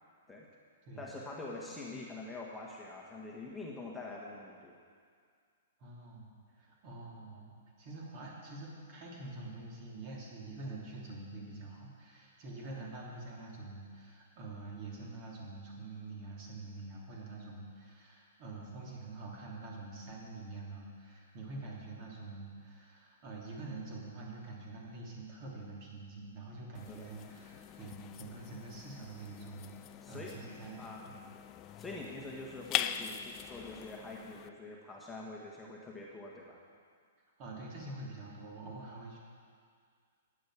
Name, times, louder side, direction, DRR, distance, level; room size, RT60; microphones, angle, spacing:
voice 1, 1.0-4.8 26.9-27.0 30.0-30.3 30.8-31.0 31.8-36.6, left 2 dB, 10° left, -3 dB, 1.5 m, -45 dB
voice 2, 5.8-6.3 6.6-31.2 32.2-32.3 37.4-39.2, right 2 dB, 40° right, -3 dB, 3.2 m, -46 dB
sound 1, 26.7-34.5, left 11 dB, 30° left, 0.5 m, -42 dB
15.0 x 9.3 x 5.0 m, 2.1 s
figure-of-eight pair, 110°, 0 cm